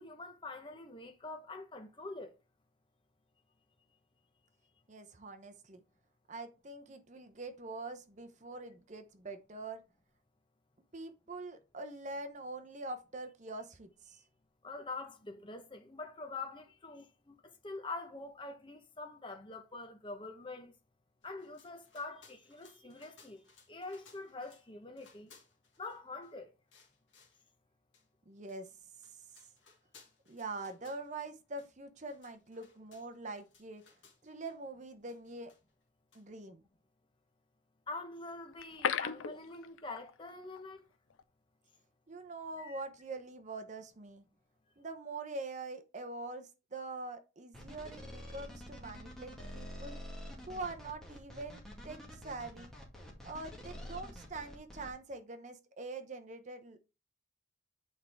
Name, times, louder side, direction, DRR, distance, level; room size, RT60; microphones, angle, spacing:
voice 1, 0.0-2.3 14.6-20.7 21.2-25.3 25.8-26.5 37.9-40.8 42.6-42.8, left 3 dB, 25° left, 1.0 m, -45 dB
voice 2, 4.9-5.8 6.3-9.8 10.9-14.2 28.3-28.7 30.3-33.8 34.2-35.5 36.1-36.6 42.1-44.2 44.8-50.0 50.5-52.7 53.2-56.8, right 3 dB, 35° right, 0.7 m, -44 dB
sound 1, 21.2-24.7 24.9-26.3 26.7-27.4 27.9-28.0 28.5-28.6 28.9-31.3 31.6-31.7 32.0-34.6 35.1-35.8 36.1-36.2, left 5 dB, 70° left, 2.0 m, -63 dB
sound 2, 38.5-40.3 40.6-40.7 41.1-41.2, left 7 dB, 90° left, 0.5 m, -35 dB
sound 3, 47.5-54.9, equal, 5° left, 2.1 m, -47 dB
8.4 x 4.5 x 3.5 m
head